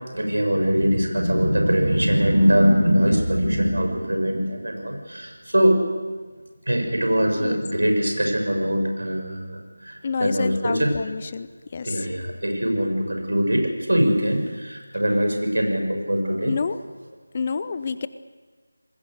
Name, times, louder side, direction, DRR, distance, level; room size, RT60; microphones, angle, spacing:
voice 1, 0.1-5.8 6.7-10.9 11.8-16.6, equal, 70° right, 3 dB, 6.9 m, -22 dB
voice 2, 10.0-11.5 11.7-11.9 16.5-16.8 17.3-18.1, left 5 dB, 30° left, 14 dB, 0.7 m, -28 dB
29.0 x 21.5 x 6.7 m, 1.5 s
figure-of-eight pair, 165°, 0 cm